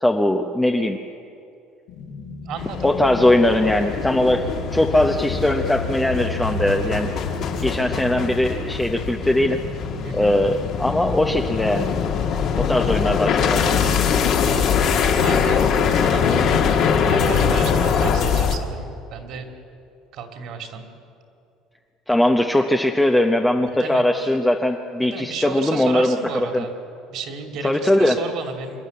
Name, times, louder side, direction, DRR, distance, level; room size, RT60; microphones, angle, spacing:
voice 1, 0.0-1.0 2.8-7.1 7.6-9.6 10.1-11.9 12.6-13.6 22.1-26.6 27.6-28.2, left 1 dB, 5° left, 3 dB, 0.8 m, -20 dB
sound 1, 1.9-14.1, left 4 dB, 80° left, 4.1 m, -37 dB
voice 2, 2.4-2.9 4.3-4.4 10.0-10.3 12.7-13.2 14.9-15.6 15.9-16.2 17.1-19.5 20.1-20.8 23.8-24.4 25.0-26.7 27.1-28.8, right 5 dB, 55° right, 5 dB, 2.7 m, -33 dB
sound 2, 2.6-18.6, left 6 dB, 50° left, 1.9 m, -22 dB
25.5 x 12.5 x 9.6 m, 2.6 s
cardioid pair, 150°, 0 cm